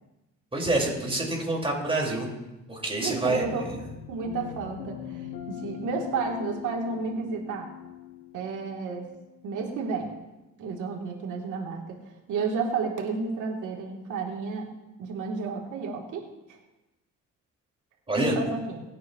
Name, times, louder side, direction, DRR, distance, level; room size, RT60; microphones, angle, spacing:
voice 1, 0.5-2.3 2.7-3.5 18.1-18.4, right 2 dB, 20° right, -2 dB, 5.1 m, -27 dB
voice 2, 3.0-3.7 4.1-7.7 8.3-9.1 9.4-10.1 10.6-12.0 12.3-14.7 15.0-16.6 18.2-18.8, right 4 dB, 85° right, -1 dB, 3.2 m, -32 dB
sound 1, 3.2-9.8, left 10 dB, 85° left, 2.1 m, -41 dB
25.0 x 9.3 x 3.1 m, 1.0 s
cardioid pair, 90°, 30 cm